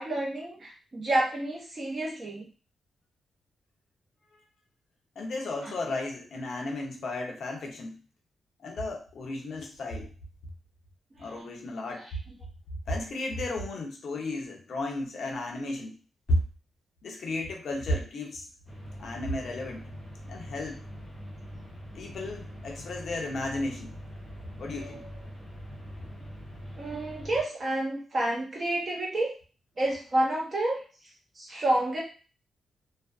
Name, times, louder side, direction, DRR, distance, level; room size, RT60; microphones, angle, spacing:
voice 1, 0.0-2.4 5.6-5.7 11.1-11.3 24.8-25.0 26.8-29.3 29.8-30.8 31.4-32.0, right 1 dB, 25° right, -3 dB, 0.8 m, -29 dB
voice 2, 5.2-8.0 8.6-10.1 11.2-12.1 12.9-15.9 16.3-16.4 17.0-18.5 19.0-19.9 20.3-20.8 22.0-23.9 24.6-25.0, left 1 dB, 50° left, 1 dB, 0.6 m, -33 dB
sound 1, 18.7-27.4, equal, 15° left, 1.2 m, -43 dB
2.5 x 2.2 x 2.3 m, 0.36 s
wide cardioid pair, 175°, 0 cm